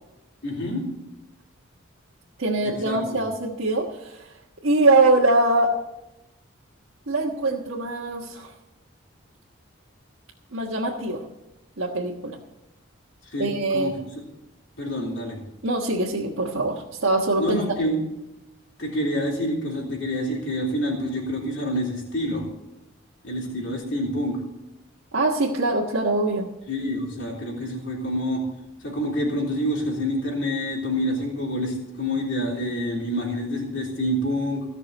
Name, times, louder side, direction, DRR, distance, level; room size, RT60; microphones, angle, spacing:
voice 1, 0.4-0.8 2.6-3.2 13.3-13.9 14.8-15.4 17.4-18.0 18.8-22.5 23.2-24.4 26.7-28.4 28.8-34.6, equal, 60° left, -4 dB, 3.5 m, -27 dB
voice 2, 2.4-4.3 4.6-5.8 7.1-8.5 10.5-11.2 11.8-12.4 13.4-13.9 15.6-17.9 25.1-26.5, right 2 dB, 75° right, -4 dB, 1.5 m, -23 dB
17.0 x 6.1 x 8.3 m, 0.94 s
head